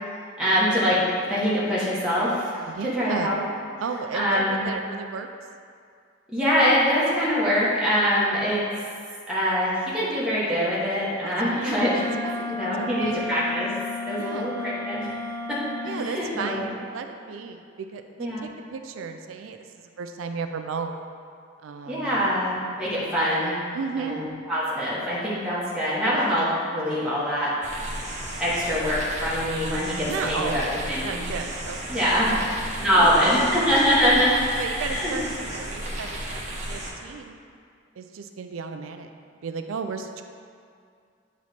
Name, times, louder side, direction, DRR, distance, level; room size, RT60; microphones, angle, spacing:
voice 1, 0.4-1.0 1.3-3.4 4.1-4.6 6.3-8.6 9.3-12.2 12.5-13.7 14.1-15.1 15.5-15.6 15.8-16.8 18.2-18.4 21.9-23.6 24.0-27.5 28.4-31.3 31.9-32.4 32.8-35.2, equal, 5° right, -10 dB, 1.0 m, -24 dB
voice 2, 2.7-3.3 3.8-5.3 11.2-13.3 14.1-14.5 15.8-21.0 21.6-22.2 23.7-24.2 30.1-33.5 34.6-37.4 38.0-39.1 39.4-40.2, right 5 dB, 80° right, 6 dB, 0.4 m, -34 dB
Wind instrument woodwind instrument, 11.6-16.0, left 2 dB, 15° left, 0.6 m, -33 dB
sound 1, 27.6-36.9, right 1 dB, 35° right, 0.8 m, -34 dB
8.5 x 3.1 x 4.2 m, 2.3 s
head